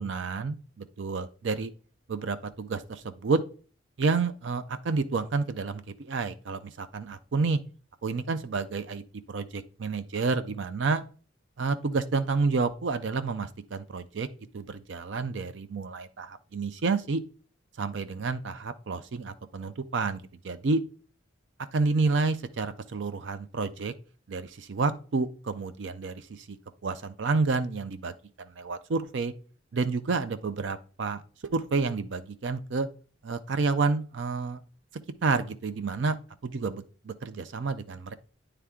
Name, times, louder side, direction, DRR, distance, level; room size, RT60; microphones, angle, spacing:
voice 1, 0.0-1.7 2.1-3.4 4.0-7.6 8.0-9.0 9.3-11.0 11.6-14.3 14.5-17.2 17.8-20.8 21.7-23.9 24.3-26.6 26.8-29.3 29.7-32.9 33.2-34.6 35.2-36.2 36.4-38.1, right 4 dB, 60° right, 11 dB, 0.4 m, -29 dB
9.7 x 3.4 x 3.6 m, 0.39 s
head